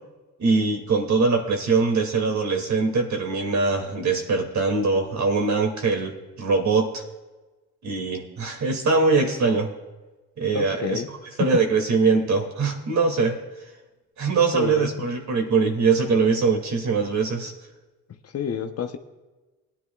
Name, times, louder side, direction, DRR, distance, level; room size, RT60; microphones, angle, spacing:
voice 1, 0.4-7.0 7.8-9.7 10.4-11.0 11.4-13.4 14.2-17.5, right 4 dB, 50° right, 3 dB, 2.5 m, -22 dB
voice 2, 10.5-11.5 14.5-15.1 18.2-19.0, left 8 dB, 40° left, 7 dB, 0.9 m, -29 dB
20.5 x 10.0 x 2.4 m, 1.2 s
hypercardioid pair, 60°, 36 cm